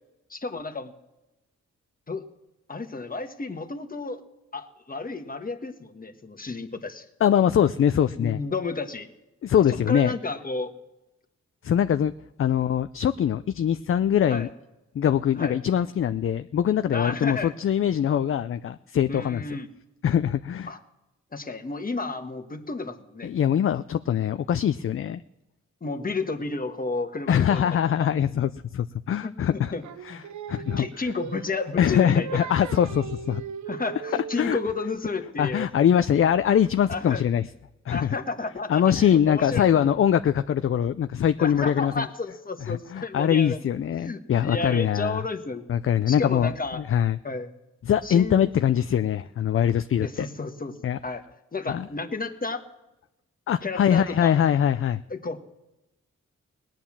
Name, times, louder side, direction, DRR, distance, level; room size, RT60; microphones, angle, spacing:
voice 1, 0.3-0.9 2.1-2.2 2.7-4.2 4.5-7.0 8.2-9.1 9.9-10.7 14.3-14.5 15.4-15.6 16.9-17.5 19.1-19.7 20.7-20.8 21.3-23.3 25.8-27.6 28.0-28.1 29.2-29.8 30.1-30.2 30.6-32.5 33.7-35.7 36.9-37.2 37.9-39.9 41.4-43.6 44.0-45.6 46.1-46.8 47.2-47.5 48.0-48.5 50.0-50.7 51.0-51.2 51.5-52.6 53.6-54.3 55.1-55.4, left 3 dB, 30° left, 6 dB, 1.2 m, -32 dB
voice 2, 7.2-8.4 9.4-10.1 11.6-12.1 12.4-14.5 14.9-19.4 20.0-20.7 23.2-25.2 27.3-29.7 30.0-30.2 30.5-30.9 31.8-33.4 34.4-34.6 35.4-37.5 37.9-38.2 38.7-42.1 42.6-45.2 45.7-47.2 47.9-50.3 50.8-51.0 51.7-51.9 53.5-55.0, left 9 dB, 50° left, 11 dB, 0.4 m, -23 dB
Singing, 29.8-35.0, right 7 dB, 75° right, 0.6 m, -38 dB
18.5 x 9.0 x 7.3 m, 0.98 s
cardioid pair, 70°, 29 cm